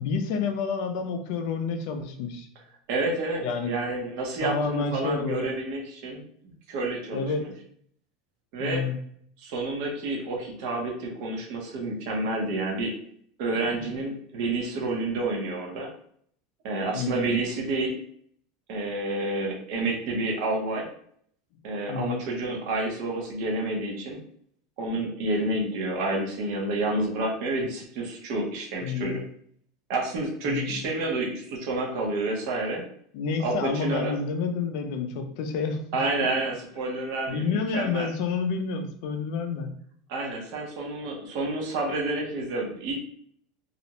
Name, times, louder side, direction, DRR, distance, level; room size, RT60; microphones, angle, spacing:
voice 1, 0.0-2.5 3.4-3.8 4.4-5.5 7.1-7.5 8.6-9.0 13.7-13.9 16.9-17.4 21.9-22.2 28.8-29.2 30.5-30.7 33.1-36.0 37.3-39.7, left 5 dB, 55° left, 6 dB, 0.4 m, -29 dB
voice 2, 2.9-6.2 6.7-7.5 8.5-8.8 9.4-12.9 13.4-15.9 16.6-17.9 18.7-20.9 21.6-24.2 24.8-29.2 29.9-32.8 33.4-34.2 35.9-38.1 40.1-42.9, right 2 dB, 50° right, 0 dB, 0.7 m, -29 dB
2.4 x 2.0 x 2.8 m, 0.63 s
supercardioid pair, 170°, 2 cm